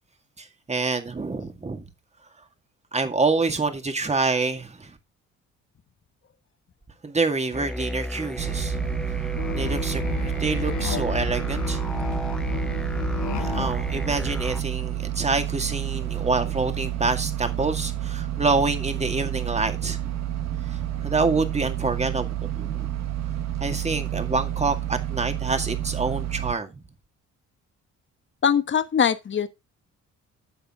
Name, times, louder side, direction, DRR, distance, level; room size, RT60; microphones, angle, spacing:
voice 1, 0.4-1.8 2.9-5.0 7.0-8.9 9.5-11.9 13.4-20.1 20.7-23.0 23.6-26.8, right 3 dB, 20° right, 2.0 m, -27 dB
sound 1, 7.5-14.6, left 1 dB, 5° left, 0.5 m, -32 dB
sound 2, 8.4-26.6, right 12 dB, 65° right, 1.3 m, -30 dB
Musical instrument, 9.4-13.9, left 10 dB, 70° left, 1.4 m, -33 dB
voice 2, 28.4-29.5, left 7 dB, 40° left, 1.1 m, -22 dB
10.0 x 6.9 x 3.7 m
cardioid pair, 90°, 30 cm